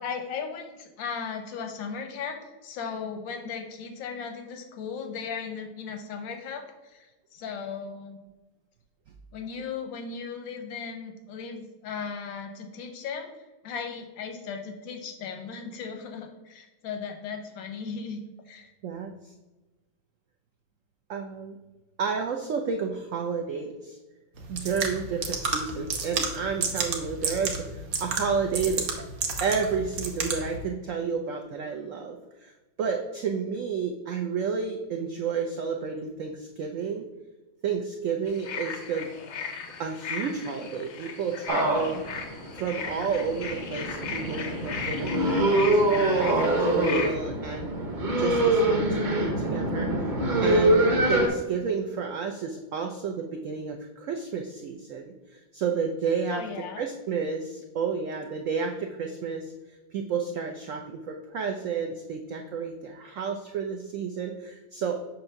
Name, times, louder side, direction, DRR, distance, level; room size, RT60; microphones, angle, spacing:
voice 1, 0.0-8.2 9.3-13.3 13.6-18.2 18.5-18.7 56.3-56.8, left 6 dB, 85° left, 4 dB, 1.5 m, -36 dB
voice 2, 18.8-19.3 21.1-21.6 22.0-24.0 24.5-28.9 29.4-32.5 32.8-37.0 37.6-39.1 39.8-42.0 42.5-47.7 48.2-50.1 50.4-56.4 56.8-59.5 59.9-65.0, right 5 dB, 90° right, 3 dB, 0.6 m, -31 dB
sound 1, 24.3-30.6, right 4 dB, 55° right, 1.2 m, -31 dB
sound 2, 38.3-47.2, left 5 dB, 70° left, 0.6 m, -37 dB
sound 3, 41.5-51.3, right 1 dB, 40° right, 0.7 m, -24 dB
7.1 x 2.6 x 5.7 m, 1.1 s
omnidirectional pair, 2.0 m